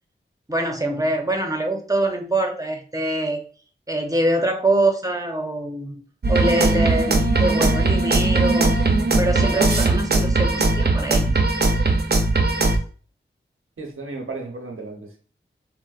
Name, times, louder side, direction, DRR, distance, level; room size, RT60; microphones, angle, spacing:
voice 1, 0.5-3.4 3.9-8.7 9.2-11.4, right 1 dB, 15° right, 3 dB, 0.7 m, -24 dB
sound 1, 6.2-12.8, right 2 dB, 55° right, 0.6 m, -19 dB
voice 2, 13.8-15.2, right 3 dB, 85° right, 2 dB, 0.8 m, -34 dB
4.3 x 2.1 x 2.4 m, 0.41 s
wide cardioid pair, 50°, 21 cm